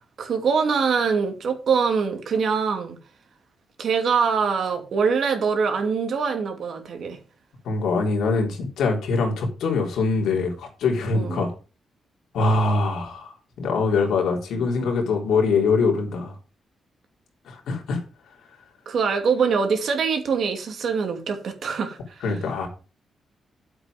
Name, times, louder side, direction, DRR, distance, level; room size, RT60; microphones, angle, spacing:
voice 1, 0.2-3.0 3.8-7.2 11.1-11.4 18.9-22.2, right 5 dB, 60° right, 2.4 m, -23 dB
voice 2, 7.6-11.5 12.3-16.4 17.5-18.0 22.2-22.7, left 4 dB, 90° left, 3.7 m, -23 dB
9.3 x 8.0 x 5.1 m
cardioid pair, 130°, 0 cm